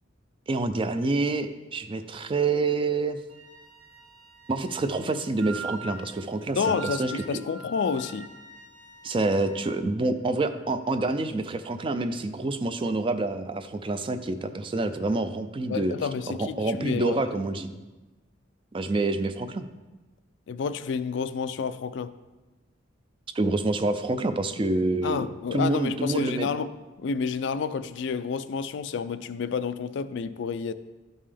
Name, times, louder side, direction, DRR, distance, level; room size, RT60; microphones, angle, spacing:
voice 1, 0.5-3.2 4.5-7.2 9.0-16.0 16.3-17.7 18.7-19.7 23.3-25.3 25.5-26.5, right 2 dB, 25° right, 10 dB, 0.4 m, -27 dB
Wind instrument woodwind instrument, 3.3-9.7, right 4 dB, 65° right, 1.4 m, -43 dB
voice 2, 6.5-8.3 15.7-17.4 20.5-22.1 25.0-26.7 27.0-30.7, left 5 dB, 65° left, 12 dB, 0.3 m, -29 dB
12.0 x 5.4 x 3.4 m, 1.1 s
head